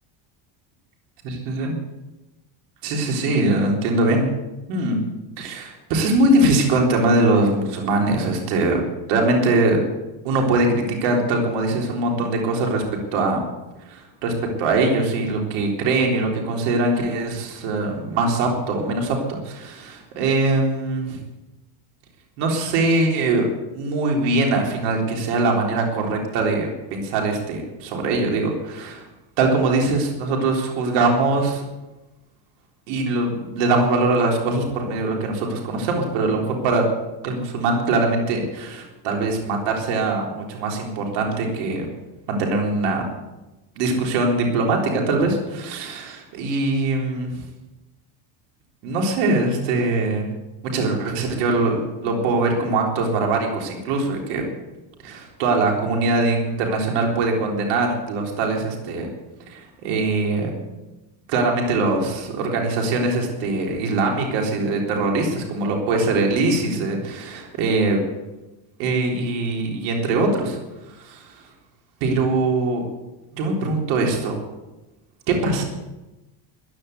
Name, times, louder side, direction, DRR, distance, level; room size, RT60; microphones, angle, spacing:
voice 1, 1.2-1.8 2.8-4.3 4.7-5.0 5.4-8.8 9.1-9.8 10.2-12.8 13.1-13.4 13.8-21.2 22.4-23.5 23.7-29.0 29.4-31.6 32.9-36.9 37.2-41.9 42.3-43.1 43.8-47.4 48.8-50.3 50.7-54.5 55.0-59.1 59.5-60.6 61.3-68.0 68.8-70.6 70.9-71.4 72.0-72.8 73.3-74.4 75.3-75.6, right 2 dB, 85° right, 1 dB, 3.9 m, -22 dB
15.0 x 10.5 x 8.2 m, 1.0 s
cardioid pair, 130°, 50 cm